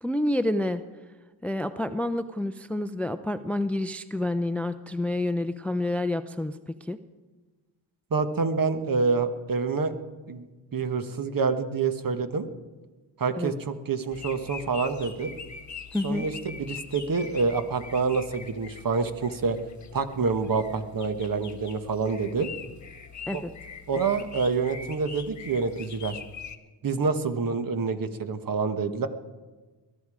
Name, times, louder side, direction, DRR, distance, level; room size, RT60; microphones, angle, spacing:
voice 1, 0.0-0.8 1.4-6.5 6.8-7.0 13.3-13.5 15.9-16.3 23.3-23.5, left 1 dB, 5° left, 12 dB, 0.5 m, -28 dB
voice 2, 8.1-10.0 10.3-10.4 10.7-12.5 13.2-15.3 16.0-19.6 19.9-22.5 23.3-23.4 23.9-26.2 26.8-29.1, right 4 dB, 45° right, 9 dB, 1.3 m, -27 dB
sound 1, 14.1-26.6, left 6 dB, 40° left, 1.4 m, -43 dB
21.0 x 12.0 x 4.9 m, 1.3 s
cardioid pair, 85°, 45 cm